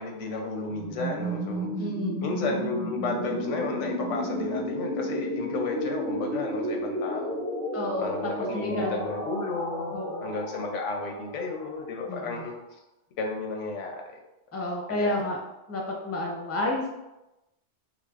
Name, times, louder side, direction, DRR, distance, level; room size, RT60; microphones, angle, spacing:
voice 1, 0.0-1.9 2.2-7.4 8.0-12.5 13.2-14.2 14.9-15.3, left 3 dB, 85° left, 2 dB, 1.0 m, -33 dB
sound 1, 0.7-12.5, equal, 35° right, 0.8 m, -33 dB
voice 2, 1.8-2.2 7.7-9.0 9.9-10.3 12.1-12.4 14.5-15.4 15.7-16.9, left 1 dB, 20° left, -1 dB, 0.4 m, -31 dB
5.9 x 2.1 x 2.4 m, 0.96 s
omnidirectional pair, 1.2 m